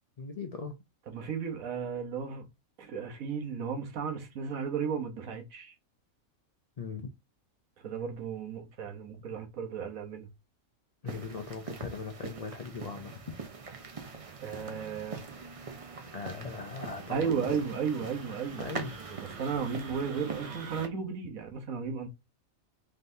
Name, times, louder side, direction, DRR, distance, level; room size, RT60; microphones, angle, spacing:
voice 1, 0.2-0.8 6.8-7.1 11.0-13.4 16.0-17.5 18.6-18.9, left 4 dB, 75° left, 0.3 m, -39 dB
voice 2, 1.1-2.5 2.8-5.7 7.8-10.3 14.4-15.2 17.1-18.7 19.1-22.1, right 6 dB, 80° right, 1.4 m, -34 dB
sound 1, 11.1-20.9, right 4 dB, 35° right, 0.5 m, -42 dB
3.9 x 3.5 x 2.7 m
omnidirectional pair, 1.4 m